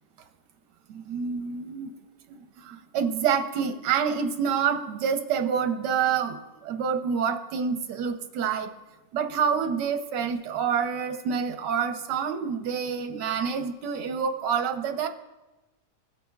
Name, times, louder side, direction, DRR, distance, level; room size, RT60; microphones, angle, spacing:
voice 1, 0.9-1.9 2.3-6.4 6.6-8.7 9.1-15.1, right 7 dB, 85° right, 7 dB, 1.4 m, -27 dB
17.0 x 8.3 x 2.3 m, 1.1 s
omnidirectional pair, 1.8 m